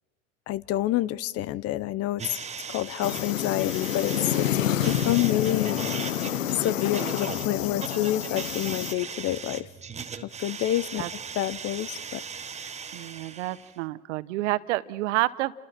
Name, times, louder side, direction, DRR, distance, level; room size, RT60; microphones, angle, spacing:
voice 1, 0.5-2.4 2.7-4.5 4.9-5.8 6.5-9.7 10.2-11.0 11.3-12.2, left 14 dB, 40° left, 21 dB, 0.7 m, -28 dB
sound 1, 2.2-13.8, right 6 dB, 15° right, 1.3 m, -39 dB
sound 2, 3.0-8.9, left 11 dB, 85° left, 1.0 m, -28 dB
voice 2, 12.9-15.5, right 18 dB, 70° right, 17 dB, 1.0 m, -29 dB
29.5 x 28.0 x 4.3 m, 1.4 s
hypercardioid pair, 100°, 38 cm